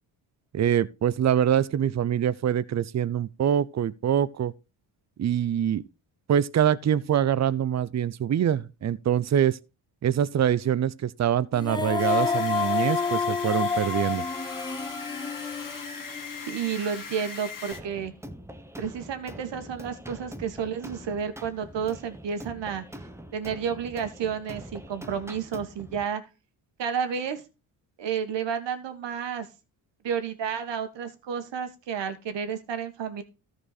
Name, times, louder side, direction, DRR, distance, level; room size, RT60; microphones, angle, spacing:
voice 1, 0.5-4.5 5.2-5.8 6.3-9.6 10.0-14.2, right 9 dB, 35° right, 0.6 m, -24 dB
Female singing, 11.5-16.7, left 5 dB, 10° left, 0.5 m, -29 dB
sound 1, 12.0-17.8, left 4 dB, 40° left, 1.8 m, -39 dB
voice 2, 16.5-18.1 18.8-22.8 23.3-26.2 26.8-27.4 28.0-29.5 30.0-33.2, right 7 dB, 60° right, 1.7 m, -31 dB
sound 2, 17.7-26.1, equal, 5° right, 1.0 m, -44 dB
13.5 x 4.7 x 4.1 m
supercardioid pair, 65°, 47 cm